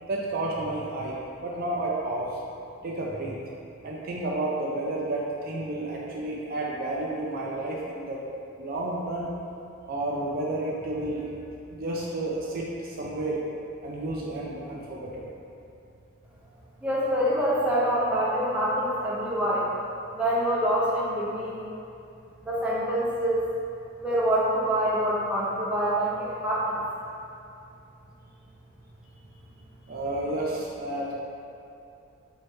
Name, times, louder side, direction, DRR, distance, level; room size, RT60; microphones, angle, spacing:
voice 1, 0.1-2.3 2.8-3.4 3.8-8.2 8.6-9.3 9.9-11.3 11.7-13.4 13.8-15.3 29.9-31.1, right 2 dB, 45° right, -3 dB, 0.4 m, -31 dB
voice 2, 16.8-19.7 20.1-21.7 22.4-23.4 24.0-26.8, right 1 dB, 5° right, -7 dB, 0.7 m, -26 dB
3.2 x 3.1 x 4.5 m, 2.6 s
head